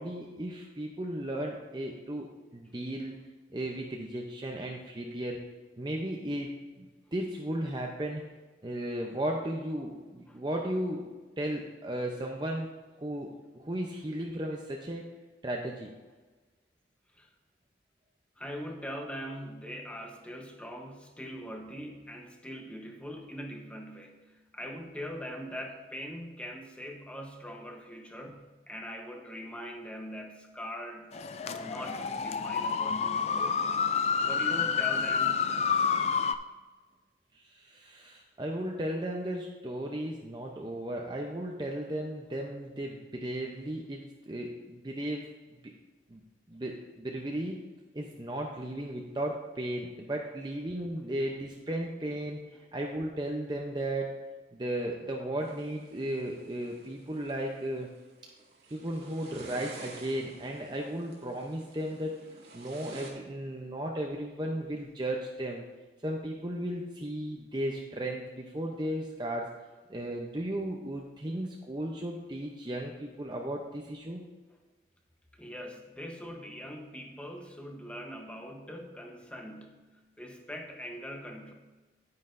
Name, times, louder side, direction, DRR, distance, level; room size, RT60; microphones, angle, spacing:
voice 1, 0.0-3.2 3.5-5.4 5.8-6.9 7.1-8.2 8.6-11.1 11.4-12.7 13.0-15.0 15.4-15.9 37.3-45.3 46.1-46.2 46.5-47.6 47.9-54.2 54.5-57.9 58.7-62.1 62.5-65.6 66.0-69.5 69.9-74.2, right 1 dB, 25° right, 0 dB, 0.7 m, -35 dB
voice 2, 18.4-31.2 31.5-33.7 34.2-35.5 52.5-52.6 75.3-81.5, equal, 5° left, 2 dB, 0.9 m, -42 dB
sound 1, 31.1-36.3, left 6 dB, 35° left, 0.3 m, -29 dB
sound 2, 55.4-63.1, right 2 dB, 65° right, 1.7 m, -50 dB
9.6 x 9.6 x 2.6 m, 1.3 s
head